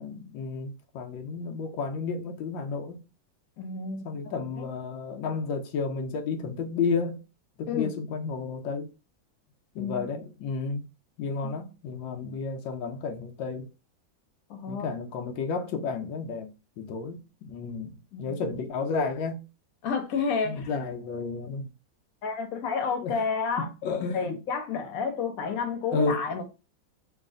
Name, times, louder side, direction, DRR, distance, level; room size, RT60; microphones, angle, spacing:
voice 1, 0.0-3.0 4.0-7.2 7.6-8.9 9.7-10.8 11.2-13.7 14.7-16.5 16.8-17.9 18.2-19.4 20.5-21.7 23.0-23.2 23.8-24.3 25.9-26.2, left 4 dB, 85° left, 1.4 m, -32 dB
voice 2, 3.6-4.2 4.6-4.7 7.7-8.0 9.8-10.0 11.4-11.7 14.5-15.0 18.1-18.5 19.8-20.7 22.2-23.7 24.1-26.4, left 5 dB, 55° left, 1.2 m, -30 dB
3.2 x 3.1 x 3.7 m
omnidirectional pair, 2.0 m